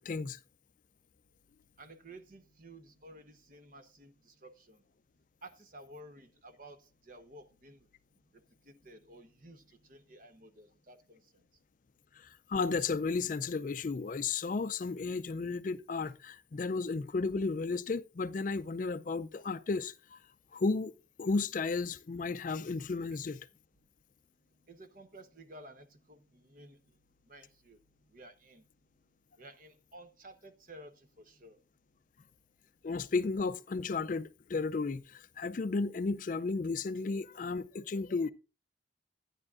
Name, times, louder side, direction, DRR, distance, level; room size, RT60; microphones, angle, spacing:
voice 1, 0.1-0.4 12.2-20.2 20.5-20.9 21.2-23.5 32.8-38.3, left 4 dB, 45° left, 0.4 m, -33 dB
voice 2, 1.8-4.8 5.4-7.9 8.3-11.2 24.7-26.8 27.3-27.8 28.1-28.6 29.4-31.6, right 1 dB, 45° right, 0.9 m, -53 dB
12.0 x 9.6 x 2.5 m
head